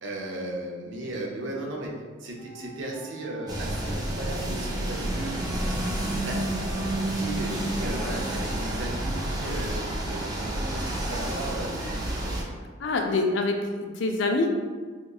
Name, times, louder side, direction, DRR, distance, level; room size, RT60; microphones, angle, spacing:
voice 1, 0.0-1.9 2.2-5.3 6.2-6.4 7.2-12.3, right 1 dB, 70° right, -1 dB, 0.6 m, -36 dB
Wind instrument woodwind instrument, 2.4-7.3, right 1 dB, 25° left, 0.8 m, -46 dB
sound 1, 3.5-12.4, right 1 dB, 20° right, 0.4 m, -30 dB
voice 2, 12.8-14.5, left 2 dB, 65° left, 3 dB, 0.4 m, -25 dB
3.6 x 2.8 x 2.3 m, 1.5 s
head